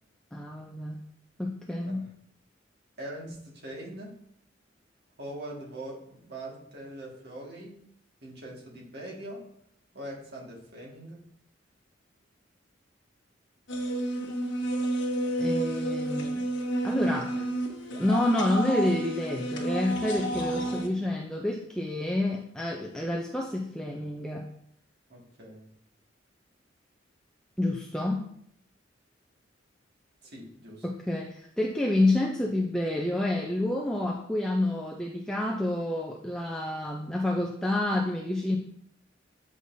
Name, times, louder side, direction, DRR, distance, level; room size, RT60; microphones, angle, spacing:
voice 1, 0.3-1.0 1.4-2.1 15.4-16.4 16.8-17.3 18.0-24.5 27.6-28.2 30.8-38.6, left 1 dB, 5° left, -1 dB, 0.4 m, -28 dB
voice 2, 3.0-4.2 5.2-7.8 8.2-9.5 9.9-11.2 17.0-17.5 17.8-18.1 25.1-25.7 30.2-30.8, right 1 dB, 60° right, -2 dB, 1.8 m, -42 dB
sound 1, 13.7-20.9, right 1 dB, 75° left, 1.2 m, -30 dB
8.0 x 5.0 x 2.6 m, 0.69 s
head